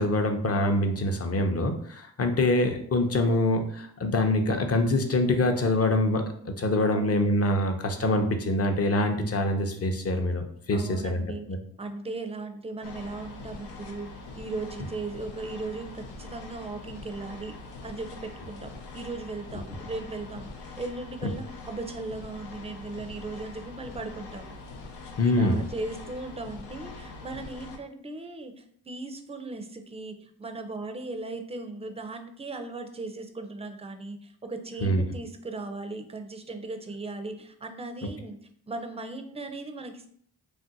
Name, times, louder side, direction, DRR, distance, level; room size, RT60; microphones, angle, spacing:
voice 1, 0.0-11.2 11.5-11.6 25.2-25.6 34.8-35.0, left 1 dB, 40° left, 5 dB, 0.6 m, -25 dB
voice 2, 6.8-7.3 10.7-11.5 11.8-14.1 14.4-17.6 17.8-24.6 25.2-38.4 38.7-40.1, right 3 dB, 15° right, 7 dB, 0.4 m, -37 dB
sound 1, 12.8-27.8, left 3 dB, 80° left, 0.6 m, -43 dB
2.5 x 2.1 x 3.9 m, 0.63 s
cardioid pair, 55°, 40 cm